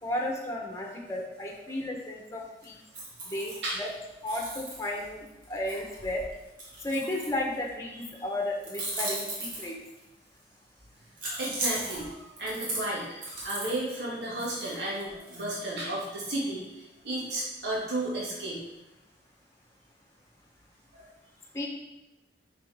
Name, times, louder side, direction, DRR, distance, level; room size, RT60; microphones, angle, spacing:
voice 1, 0.0-2.8 3.3-3.9 4.2-6.2 6.8-9.8 21.5-21.7, left 1 dB, 15° left, -1 dB, 1.1 m, -33 dB
sound 1, 2.6-3.9 4.3-7.7 8.6-10.0 11.2-13.8 14.4-15.7, right 1 dB, 50° right, 2.3 m, -37 dB
voice 2, 11.4-18.6 20.9-21.0, right 1 dB, 70° right, -5 dB, 2.3 m, -33 dB
6.8 x 5.8 x 3.6 m, 0.98 s
head